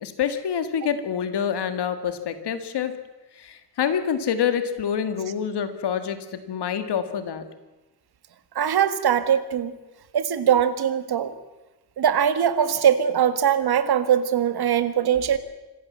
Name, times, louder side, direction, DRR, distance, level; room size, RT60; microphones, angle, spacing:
voice 1, 0.0-3.0 3.4-7.5, left 8 dB, 75° left, 10 dB, 2.0 m, -27 dB
voice 2, 8.5-9.7 10.1-11.3 12.0-15.4, right 9 dB, 65° right, 12 dB, 1.7 m, -21 dB
26.0 x 15.5 x 7.5 m, 1.1 s
wide cardioid pair, 165°, 41 cm